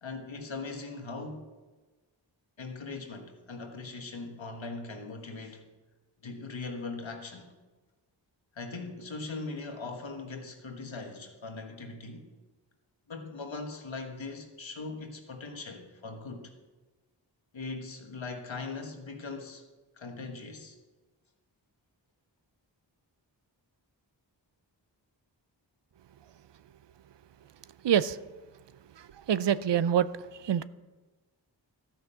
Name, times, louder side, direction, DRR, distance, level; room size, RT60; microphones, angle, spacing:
voice 1, 0.0-1.5 2.6-5.6 6.2-7.5 8.5-12.2 13.1-16.5 17.5-19.6 20.0-20.7, left 3 dB, 90° left, 4 dB, 1.4 m, -40 dB
voice 2, 27.8-28.2 29.0-30.6, right 9 dB, 70° right, 16 dB, 0.5 m, -26 dB
13.0 x 5.8 x 6.8 m, 1.2 s
wide cardioid pair, 45°, 45 cm